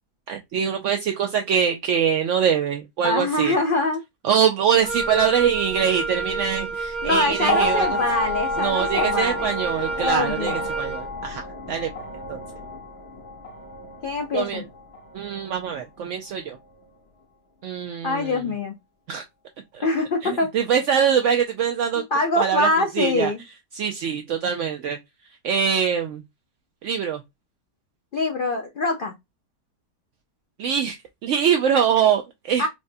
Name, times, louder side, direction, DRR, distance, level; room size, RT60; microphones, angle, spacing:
voice 1, 0.3-3.6 4.2-7.9 8.6-11.4 11.7-11.9 12.3-12.4 14.3-14.6 15.1-16.6 17.6-18.4 19.1-19.2 19.7-19.9 20.2-22.0 22.4-22.7 23.0-23.3 23.7-25.0 25.4-26.2 26.8-27.2 30.6-31.0 31.2-32.7, right 7 dB, 75° right, 0.7 m, -23 dB
voice 2, 3.0-4.0 7.0-9.5 10.0-10.6 14.0-14.6 18.0-18.8 19.8-20.5 21.9-23.4 28.1-29.1 32.6-32.7, left 2 dB, 80° left, 0.4 m, -24 dB
Wind instrument woodwind instrument, 4.8-11.1, right 4 dB, 55° right, 1.3 m, -30 dB
sound 1, 7.4-15.8 16.8-16.9, left 2 dB, 50° left, 0.8 m, -30 dB
4.6 x 2.2 x 2.6 m
omnidirectional pair, 1.8 m